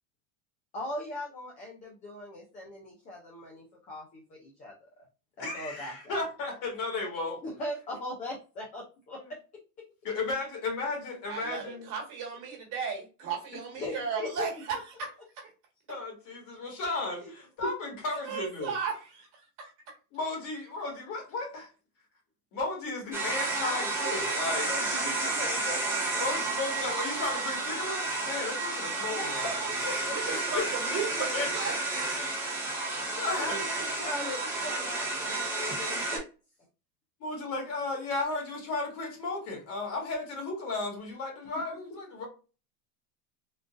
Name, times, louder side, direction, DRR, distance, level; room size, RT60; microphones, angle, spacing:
voice 1, 0.7-4.7 5.4-6.2 7.4-9.2 13.8-14.5 17.2-17.3 23.6-25.8 29.1-30.2 33.3-36.2, left 2 dB, 20° left, -1 dB, 0.4 m, -39 dB
voice 2, 5.4-7.4 10.0-11.9 13.5-13.6 15.9-18.8 20.1-21.7 22.5-24.7 26.2-29.7 30.5-31.5 32.6-33.7 37.2-42.3, left 3 dB, 45° left, 0 dB, 1.5 m, -34 dB
voice 3, 11.3-15.1 15.4-15.5 18.2-19.3 19.6-19.7 29.4-29.5 30.1-32.2, right 6 dB, 40° right, -1 dB, 1.5 m, -35 dB
sound 1, 23.1-36.2, right 2 dB, 5° right, 1.2 m, -31 dB
3.8 x 2.4 x 2.4 m, 0.33 s
supercardioid pair, 140°, 47 cm